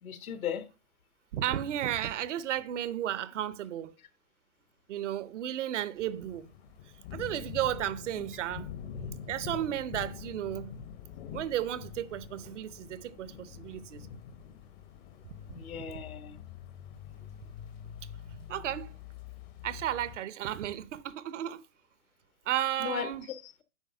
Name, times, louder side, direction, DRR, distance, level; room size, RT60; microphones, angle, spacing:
voice 1, 0.0-0.7 15.5-16.4 22.8-23.6, left 8 dB, 70° left, 1.4 m, -37 dB
voice 2, 1.3-3.9 4.9-6.5 7.1-8.7 9.3-10.7 11.3-14.1 18.5-18.9 19.6-21.6 22.5-23.3, right 11 dB, 55° right, 0.7 m, -33 dB
sound 1, 6.0-20.2, left 8 dB, 40° left, 1.0 m, -45 dB
9.3 x 3.6 x 5.6 m
figure-of-eight pair, 115°, 45 cm